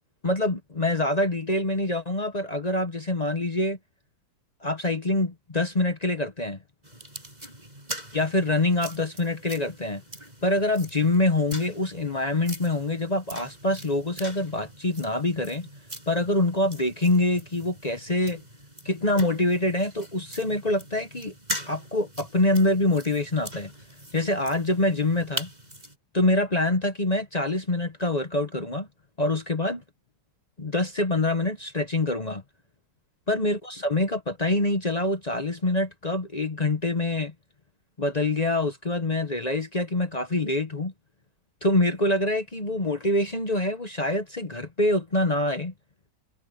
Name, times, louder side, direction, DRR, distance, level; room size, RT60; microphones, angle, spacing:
voice 1, 0.2-3.8 4.6-6.6 8.1-10.0 10.4-15.7 16.1-18.4 18.8-21.3 21.7-23.7 24.1-25.5 26.1-28.9 29.2-29.8 30.6-32.4 33.3-37.3 38.0-40.9 41.6-45.7, left 2 dB, 30° left, 0.9 m, -25 dB
sound 1, 6.8-26.0, equal, 20° right, 7.7 m, -41 dB
omnidirectional pair, 1.9 m